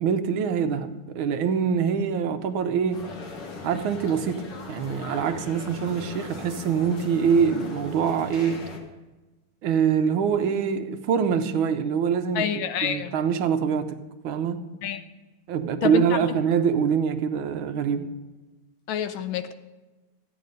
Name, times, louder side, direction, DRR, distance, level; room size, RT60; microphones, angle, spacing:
voice 1, 0.0-3.0 3.6-8.6 9.6-14.0 14.2-14.6 15.5-18.1, right 7 dB, 70° right, 9 dB, 1.5 m, -24 dB
sound 1, 2.9-8.8, left 3 dB, 55° left, 2.0 m, -39 dB
voice 2, 12.3-13.1 14.8-15.0 15.8-16.0 18.9-19.5, left 9 dB, 75° left, 11 dB, 1.4 m, -27 dB
14.0 x 9.4 x 5.2 m, 1.2 s
omnidirectional pair, 2.4 m